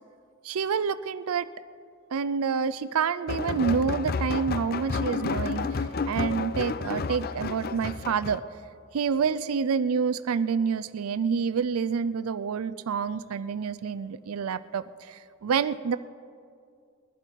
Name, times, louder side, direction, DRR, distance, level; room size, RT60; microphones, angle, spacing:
voice 1, 0.4-1.5 2.1-5.7 6.1-8.4 8.9-16.0, right 6 dB, 85° right, 15 dB, 0.4 m, -28 dB
sound 1, 3.3-8.4, left 4 dB, 45° left, 0.5 m, -31 dB
21.5 x 11.5 x 4.6 m, 2.3 s
head